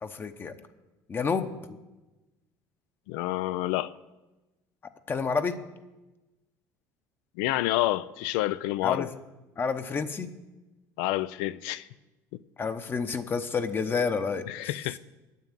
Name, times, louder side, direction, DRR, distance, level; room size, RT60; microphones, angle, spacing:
voice 1, 0.0-0.5 1.1-1.8 5.1-5.6 8.8-9.1 9.6-10.3 12.6-14.4, left 5 dB, 30° left, 0.8 m, -29 dB
voice 2, 3.1-3.9 7.4-9.1 11.0-11.9 14.5-15.0, left 16 dB, 85° left, 0.4 m, -28 dB
9.5 x 7.1 x 9.0 m
supercardioid pair, 110°, 8 cm